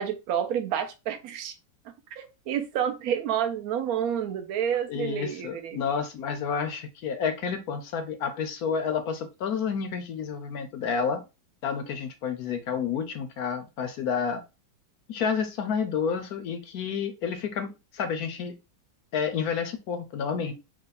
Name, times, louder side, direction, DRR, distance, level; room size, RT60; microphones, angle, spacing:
voice 1, 0.0-1.5 2.2-5.8, right 9 dB, 60° right, 1.1 m, -29 dB
voice 2, 4.9-11.2 11.6-14.4 15.1-18.6 19.1-20.5, left 6 dB, 65° left, 1.0 m, -30 dB
4.8 x 2.4 x 4.0 m
omnidirectional pair, 2.0 m